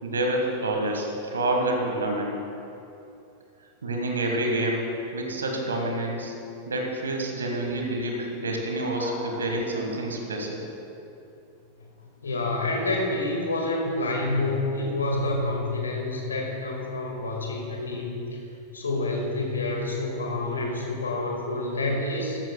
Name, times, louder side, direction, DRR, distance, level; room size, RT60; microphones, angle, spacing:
voice 1, 0.0-2.3 3.8-4.8 5.1-6.3 6.7-10.6, right 1 dB, 70° right, 2 dB, 1.6 m, -28 dB
voice 2, 9.0-9.4 12.2-18.2 18.7-22.4, left 2 dB, 75° left, 0 dB, 1.9 m, -28 dB
13.5 x 12.5 x 2.3 m, 2.8 s
figure-of-eight pair, 90°, 0 cm